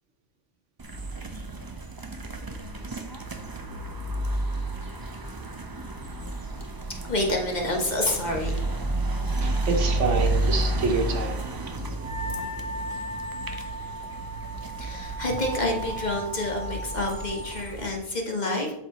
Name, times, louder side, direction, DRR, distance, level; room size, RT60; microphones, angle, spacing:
sound 1, 0.8-17.9, right 1 dB, 25° right, 0.5 m, -31 dB
voice 1, 6.9-8.5 14.8-18.7, left 1 dB, 40° left, 0 dB, 1.2 m, -28 dB
voice 2, 9.4-11.8, right 4 dB, 75° right, 4 dB, 1.3 m, -27 dB
Wind instrument woodwind instrument, 12.0-17.5, right 1 dB, 50° right, 1.1 m, -37 dB
12.0 x 4.1 x 3.0 m, 0.84 s
omnidirectional pair, 1.2 m